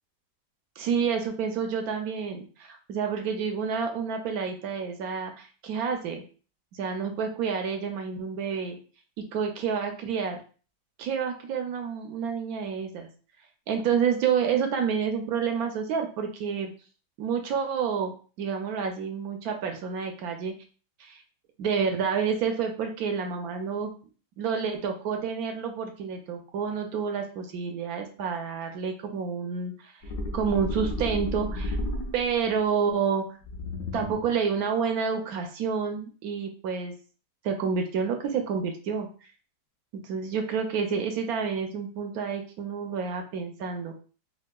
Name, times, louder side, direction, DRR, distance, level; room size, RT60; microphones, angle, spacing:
voice 1, 0.8-6.2 6.7-8.8 9.3-10.4 11.0-13.1 13.7-16.7 17.2-20.5 21.0-21.2 21.6-23.9 24.4-29.9 30.3-31.8 32.1-33.2 33.9-36.9 37.4-39.1 40.0-43.9, right 6 dB, 75° right, 4 dB, 0.9 m, -29 dB
sound 1, 30.0-32.5 33.4-34.4, left 1 dB, 70° left, 0.7 m, -32 dB
4.4 x 2.3 x 2.2 m, 0.38 s
omnidirectional pair, 2.0 m